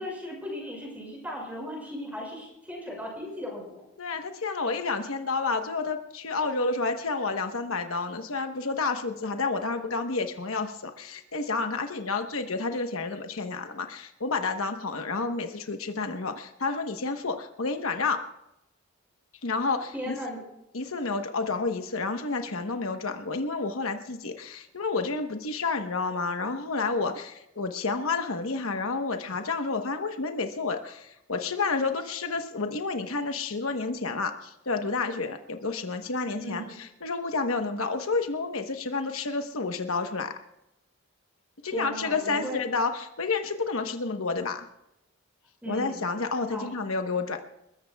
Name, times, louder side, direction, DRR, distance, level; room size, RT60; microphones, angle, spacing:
voice 1, 0.0-3.8 19.9-20.4 36.4-36.8 41.6-42.6 45.6-46.1 46.5-46.7, equal, 5° right, -2 dB, 6.0 m, -37 dB
voice 2, 4.0-18.2 19.4-20.2 20.7-40.3 41.6-44.7 45.7-47.4, left 4 dB, 80° left, 6 dB, 1.1 m, -30 dB
28.5 x 14.5 x 2.3 m, 0.87 s
head